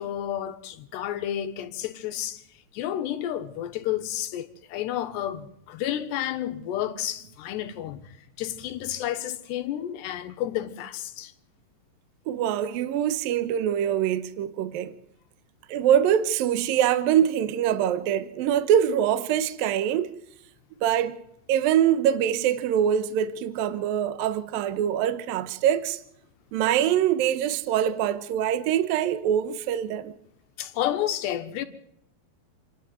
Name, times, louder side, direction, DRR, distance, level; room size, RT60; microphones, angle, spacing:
voice 1, 0.0-2.4 2.7-11.3 30.6-31.7, left 11 dB, 75° left, 3.4 m, -31 dB
voice 2, 12.3-14.9 15.7-20.1 20.8-21.2 21.5-26.0 26.5-30.1, right 10 dB, 70° right, 2.5 m, -24 dB
28.5 x 11.5 x 9.3 m
omnidirectional pair, 5.0 m